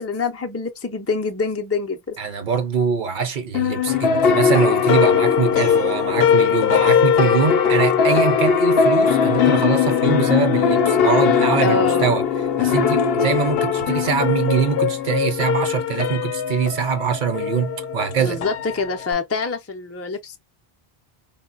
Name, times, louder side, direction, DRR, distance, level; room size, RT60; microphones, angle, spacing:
voice 1, 0.0-2.2 11.6-12.2 18.2-20.4, left 4 dB, 25° left, 0.3 m, -25 dB
voice 2, 2.2-12.2 12.6-18.4, right 6 dB, 55° right, 0.7 m, -23 dB
sound 1, 3.5-19.1, left 7 dB, 75° left, 0.8 m, -19 dB
3.7 x 2.1 x 2.4 m
omnidirectional pair, 1.0 m